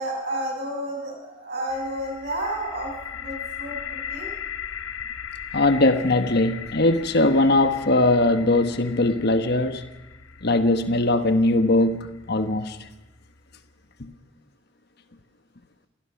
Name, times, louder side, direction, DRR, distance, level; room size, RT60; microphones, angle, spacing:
voice 1, 0.0-4.3, right 1 dB, 50° right, 7.4 m, -31 dB
sound 1, 1.7-13.5, left 8 dB, 80° left, 1.0 m, -39 dB
voice 2, 5.5-9.8 10.4-12.8 14.0-14.1, left 2 dB, 50° left, 1.3 m, -20 dB
27.0 x 16.5 x 5.9 m
head